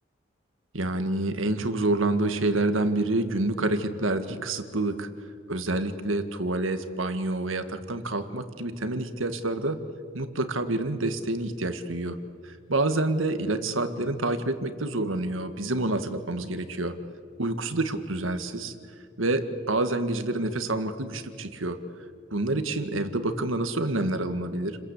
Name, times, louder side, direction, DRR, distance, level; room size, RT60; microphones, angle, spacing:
voice 1, 0.7-5.1 5.5-9.8 10.1-12.2 12.4-16.9 17.4-18.7 19.2-21.8 22.3-24.8, right 2 dB, 90° right, 9 dB, 1.8 m, -28 dB
30.0 x 21.5 x 8.4 m, 2.3 s
head